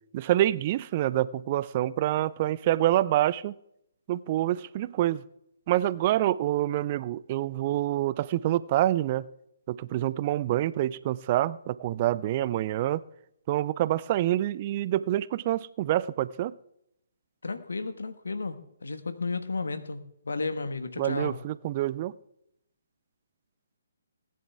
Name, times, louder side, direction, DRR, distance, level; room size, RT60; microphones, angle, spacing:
voice 1, 0.1-3.5 4.1-5.2 5.7-9.2 9.7-13.0 13.5-16.5 21.0-22.1, right 14 dB, 35° right, 0.4 m, -26 dB
voice 2, 17.4-21.4, left 3 dB, 70° left, 1.3 m, -33 dB
19.5 x 10.5 x 3.4 m
figure-of-eight pair, 135°, 0 cm